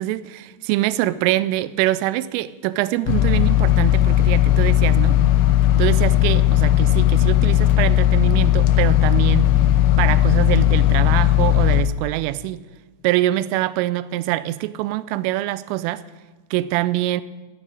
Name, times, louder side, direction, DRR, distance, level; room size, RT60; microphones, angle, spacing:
voice 1, 0.0-5.2 5.8-9.5 10.0-12.6 13.0-16.0 16.5-17.2, right 15 dB, 90° right, 3.1 m, -24 dB
sound 1, 3.1-11.8, left 13 dB, 80° left, 2.9 m, -16 dB
9.8 x 9.1 x 9.6 m
omnidirectional pair, 5.7 m